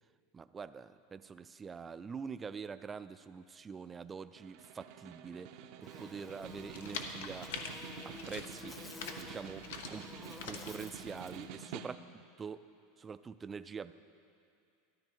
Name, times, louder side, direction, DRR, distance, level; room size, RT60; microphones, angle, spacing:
voice 1, 0.3-5.5 5.8-7.5 8.0-8.7 9.2-10.1 10.4-12.0 12.4-12.6 13.0-13.9, right 5 dB, 20° right, 12 dB, 0.4 m, -45 dB
Snare drum, 4.4-12.3, right 7 dB, 60° right, 0.6 m, -49 dB
Buzz, 5.8-11.4, left 2 dB, 15° left, 0.8 m, -53 dB
sound 1, 6.4-11.5, left 5 dB, 85° left, 1.0 m, -46 dB
13.5 x 12.0 x 4.6 m, 2.5 s
supercardioid pair, 130°, 0 cm